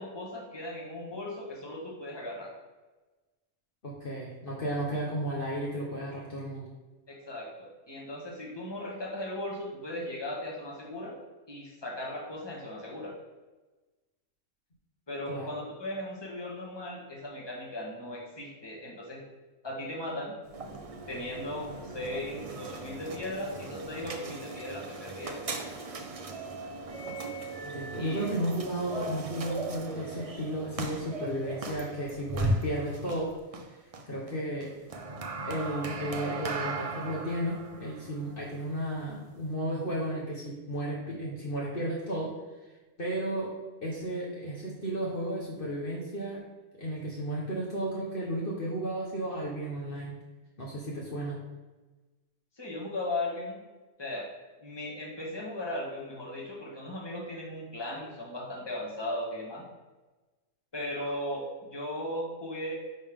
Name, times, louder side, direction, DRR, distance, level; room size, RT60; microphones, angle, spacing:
voice 1, 0.0-2.5 7.1-11.1 11.5-13.1 15.1-19.2 19.6-20.3 21.1-25.5 28.0-28.2 52.6-53.6 54.0-54.3 54.6-59.6 60.7-62.7, left 1 dB, 20° left, -4 dB, 1.5 m, -37 dB
voice 2, 3.8-6.7 15.3-15.5 27.7-33.3 34.1-34.7 35.4-42.3 43.0-43.5 43.8-46.4 46.8-50.2 50.6-51.4, right 1 dB, 45° left, -5 dB, 1.3 m, -33 dB
sound 1, 20.5-39.5, right 2 dB, 40° right, 0.5 m, -38 dB
10.0 x 3.6 x 3.6 m, 1.2 s
omnidirectional pair, 1.3 m